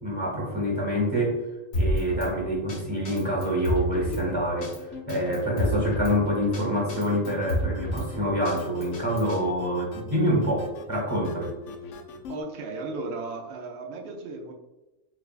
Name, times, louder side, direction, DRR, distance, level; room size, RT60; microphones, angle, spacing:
voice 1, 0.0-1.4 1.7-11.6, equal, 30° right, -4 dB, 1.2 m, -26 dB
Drum kit, 1.7-2.3 2.7-2.8 3.1-4.2 4.6-4.8 5.1-6.1 6.5-6.6 6.9-8.1 8.5-9.4, equal, 90° left, 1.8 m, -28 dB
sound 1, 3.1-12.4, left 4 dB, 70° left, 0.9 m, -42 dB
voice 2, 12.3-14.5, right 3 dB, 55° right, 1 dB, 0.9 m, -35 dB
6.1 x 2.4 x 2.4 m, 1.1 s
omnidirectional pair, 1.4 m